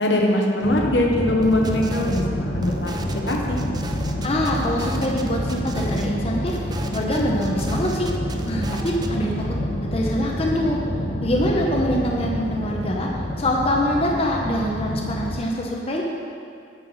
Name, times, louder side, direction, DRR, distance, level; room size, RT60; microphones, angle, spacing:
voice 1, 0.0-2.9 3.3-3.6, left 1 dB, 75° left, 0 dB, 1.1 m, -21 dB
sound 1, 0.6-15.3, left 1 dB, 60° left, 1.2 m, -28 dB
sound 2, 1.4-2.2 2.6-6.1 6.5-9.1, right 2 dB, 25° right, 0.4 m, -37 dB
voice 2, 4.2-6.6 6.9-8.1 8.4-9.6 9.9-10.8 11.2-13.1 13.4-16.0, equal, 35° left, -1 dB, 0.8 m, -24 dB
8.7 x 7.4 x 4.1 m, 2.4 s
head